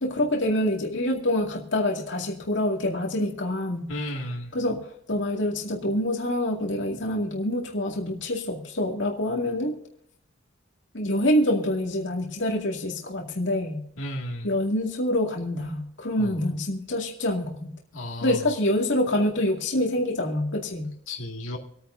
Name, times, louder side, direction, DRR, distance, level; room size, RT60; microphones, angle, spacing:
voice 1, 0.0-3.8 4.5-9.7 10.9-13.8 14.4-17.7 18.2-20.9, left 1 dB, 65° left, 0 dB, 2.2 m, -26 dB
voice 2, 3.9-4.5 14.0-14.5 16.2-16.4 17.9-18.5 21.1-21.6, left 1 dB, 90° left, 0 dB, 2.3 m, -33 dB
27.0 x 9.3 x 2.7 m, 0.72 s
head